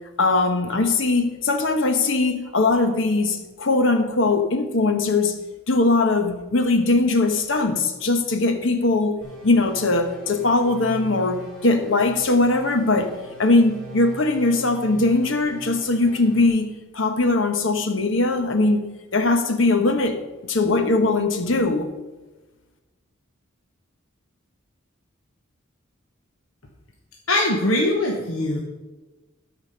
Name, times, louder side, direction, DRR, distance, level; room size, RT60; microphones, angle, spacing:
voice 1, 0.2-5.4 5.7-13.1 13.4-18.9 19.1-20.2 20.5-21.9, left 2 dB, 65° left, 7 dB, 1.0 m, -20 dB
sound 1, 9.2-16.5, right 2 dB, 5° left, 2.9 m, -42 dB
voice 2, 27.3-28.6, left 1 dB, 85° left, 0 dB, 1.2 m, -21 dB
13.0 x 5.1 x 5.2 m, 1.1 s
head